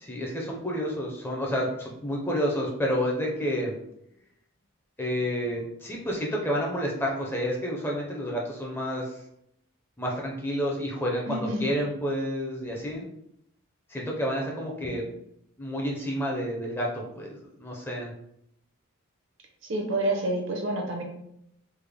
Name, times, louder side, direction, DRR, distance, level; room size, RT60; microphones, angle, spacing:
voice 1, 0.0-3.8 5.0-9.2 10.0-13.1 13.9-15.0 15.6-18.1, equal, 10° left, -1 dB, 0.5 m, -30 dB
voice 2, 11.3-11.7 14.9-15.0 19.7-21.0, right 1 dB, 60° right, 1 dB, 0.7 m, -28 dB
3.3 x 2.0 x 3.4 m, 0.76 s
head